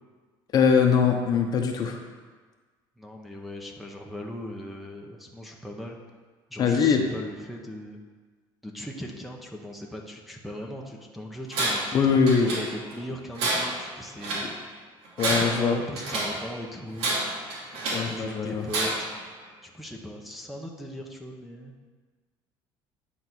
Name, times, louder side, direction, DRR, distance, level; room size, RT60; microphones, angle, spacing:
voice 1, 0.5-2.0 6.6-7.0 11.9-12.5 14.4-14.5 15.2-15.8 17.9-18.6, left 6 dB, 45° left, 3 dB, 1.0 m, -22 dB
voice 2, 3.0-6.0 6.5-8.0 8.6-14.5 15.2-17.1 18.0-19.1 19.6-21.8, equal, ahead, -1 dB, 1.0 m, -38 dB
Tools, 11.5-12.0 12.3-13.0 13.4-14.5 15.0-16.4 17.0-18.1 18.7-19.2, right 2 dB, 75° right, 2.6 m, -29 dB
10.5 x 4.1 x 6.1 m, 1.4 s
cardioid pair, 135°, 10 cm